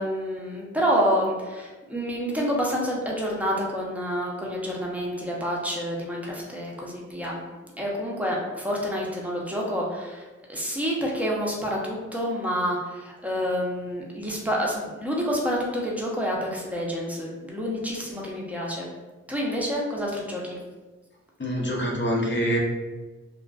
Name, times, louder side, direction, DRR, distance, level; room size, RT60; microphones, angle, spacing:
voice 1, 0.0-7.4 7.8-18.9 19.3-20.6, equal, 5° right, -3 dB, 0.6 m, -28 dB
voice 2, 21.4-22.6, equal, 40° left, -1 dB, 0.6 m, -25 dB
2.4 x 2.3 x 2.3 m, 1.2 s
cardioid pair, 60°, 29 cm